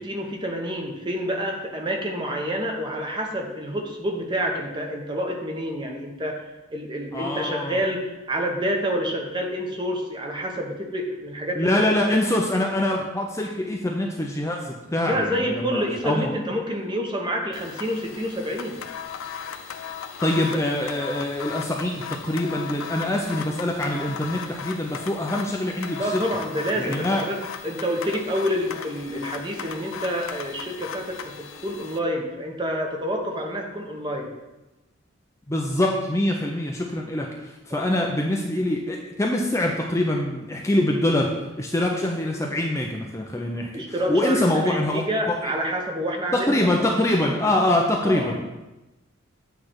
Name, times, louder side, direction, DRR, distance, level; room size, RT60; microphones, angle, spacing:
voice 1, 0.0-6.4 6.7-11.9 15.0-18.8 26.0-27.4 27.6-34.3 43.7-46.9 48.0-48.3, equal, 20° right, 1 dB, 0.9 m, -28 dB
voice 2, 7.1-7.8 11.6-16.2 20.2-26.2 26.8-27.3 35.5-45.0 45.4-45.5 46.3-48.3, left 1 dB, 15° left, 0 dB, 0.5 m, -24 dB
sound 1, 17.5-32.0, left 7 dB, 70° left, 0.5 m, -37 dB
8.5 x 3.3 x 6.0 m, 1.0 s
head